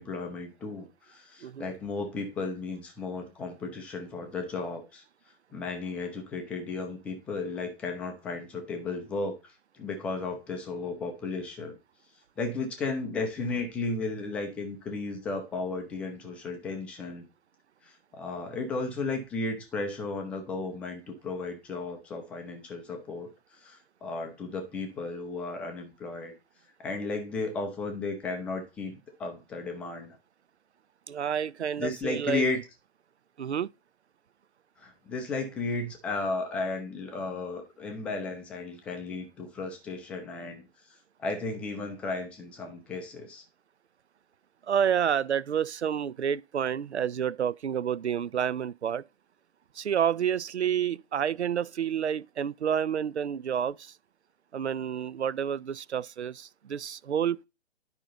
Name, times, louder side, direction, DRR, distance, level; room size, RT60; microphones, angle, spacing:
voice 1, 0.0-5.0 5.5-11.8 12.4-17.3 17.8-23.3 23.6-26.3 26.8-30.2 31.8-32.6 34.8-40.7 41.2-43.4, left 3 dB, 5° left, 0.5 m, -34 dB
voice 2, 31.1-32.4 33.4-33.7 44.7-49.0 49.8-53.9 54.5-57.4, right 8 dB, 75° right, 0.5 m, -29 dB
9.9 x 5.3 x 3.8 m
figure-of-eight pair, 125°, 34 cm